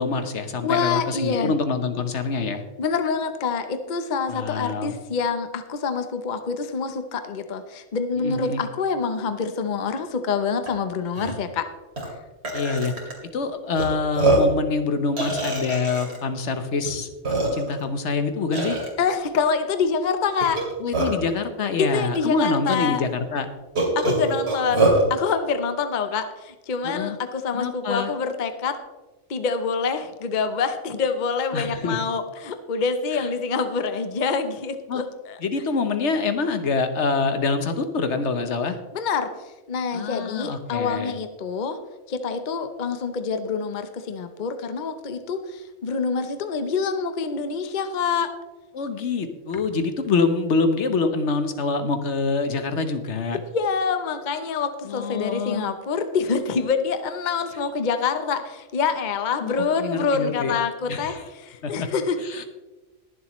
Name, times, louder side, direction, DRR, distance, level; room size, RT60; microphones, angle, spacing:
voice 1, 0.0-2.6 4.3-5.0 8.2-8.6 12.5-12.9 13.3-17.1 17.5-18.8 20.8-23.5 26.8-27.2 27.5-28.1 31.5-32.0 33.1-33.3 34.9-35.0 35.4-38.8 39.9-41.1 48.7-53.4 54.8-55.7 59.4-60.6 60.9-61.2 61.6-61.9 62.2-62.4, left 4 dB, 65° left, 8 dB, 1.2 m, -25 dB
voice 2, 0.6-1.5 2.8-11.7 12.0-12.1 19.0-20.6 21.8-23.0 23.9-28.8 29.3-35.4 38.9-39.3 39.7-41.8 42.1-48.3 53.3-62.2, left 5 dB, 45° left, 9 dB, 0.8 m, -26 dB
Burping eructation, 10.7-10.8 11.1-11.3 12.0-12.1 12.4-13.1 13.8-13.9 14.1-14.6 15.2-16.2 16.9-17.0 17.2-17.8 18.5-18.9 20.4-21.3 22.1-22.2 22.7-22.8 23.8-25.0, right 2 dB, 60° right, 2.9 m, -23 dB
21.0 x 7.3 x 3.0 m, 1.2 s
omnidirectional pair, 1.3 m